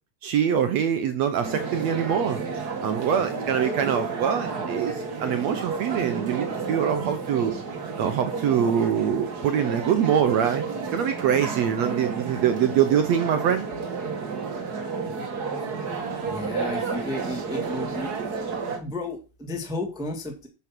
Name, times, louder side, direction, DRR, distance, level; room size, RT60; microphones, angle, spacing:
voice 1, 0.2-2.4 2.8-4.9 5.2-7.5 8.0-10.6 10.9-13.7, right 8 dB, 75° right, 9 dB, 1.6 m, -24 dB
sound 1, 1.4-18.8, right 4 dB, 45° right, 1.2 m, -31 dB
voice 2, 16.2-18.1 18.8-20.5, left 1 dB, ahead, 3 dB, 1.1 m, -33 dB
10.5 x 7.3 x 6.1 m, 0.32 s
omnidirectional pair, 4.3 m